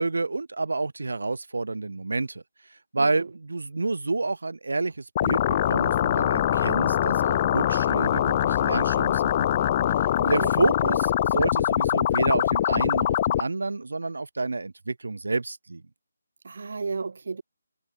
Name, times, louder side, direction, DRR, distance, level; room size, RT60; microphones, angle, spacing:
voice 1, 0.0-2.4 2.7-15.8, right 3 dB, 80° right, 4.8 m, -29 dB
voice 2, 3.0-3.3 10.2-10.5 10.8-10.9 16.4-17.4, right 4 dB, 55° right, 1.5 m, -33 dB
sound 1, 5.2-13.4, left 11 dB, 20° left, 0.8 m, -23 dB
hypercardioid pair, 175°, 0 cm